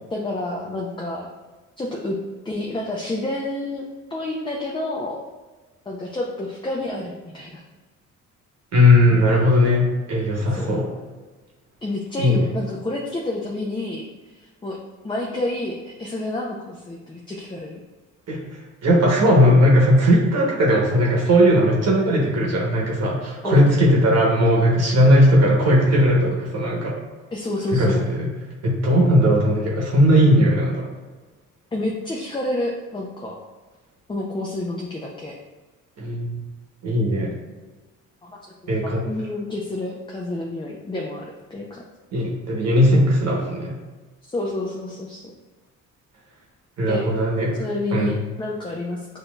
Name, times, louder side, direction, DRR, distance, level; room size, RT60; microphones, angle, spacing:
voice 1, 0.1-1.3 1.8-2.2 2.4-3.8 4.1-5.3 5.9-7.6 9.1-9.4 10.6-10.7 11.8-14.0 14.3-14.8 15.0-17.8 23.4-23.7 27.3-28.0 31.7-33.4 34.1-35.3 38.2-41.8 44.3-45.3 46.9-47.1 47.6-49.1, left 2 dB, 15° left, -2 dB, 0.5 m, -29 dB
voice 2, 8.7-10.8 12.2-12.4 18.3-18.4 18.8-26.9 27.7-28.3 28.6-30.9 36.0-36.4 36.8-37.4 38.7-39.0 42.1-43.8 46.8-47.6 47.9-48.2, equal, 55° right, -2 dB, 1.0 m, -18 dB
6.1 x 2.6 x 2.3 m, 1.2 s
cardioid pair, 90°, 30 cm